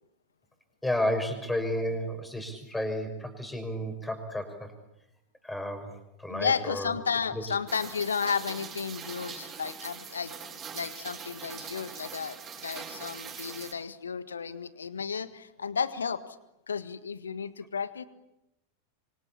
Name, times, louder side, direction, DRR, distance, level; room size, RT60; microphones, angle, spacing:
voice 1, 0.8-4.7 5.4-6.9 7.3-7.4, left 1 dB, 5° left, 5 dB, 6.1 m, -32 dB
voice 2, 6.3-10.3 10.7-12.4 12.6-16.2 16.7-18.0, left 6 dB, 70° left, 14 dB, 1.6 m, -33 dB
Rain, 7.7-13.7, right 7 dB, 30° right, 7.7 m, -42 dB
26.5 x 25.0 x 8.6 m, 0.88 s
figure-of-eight pair, 90°, 0 cm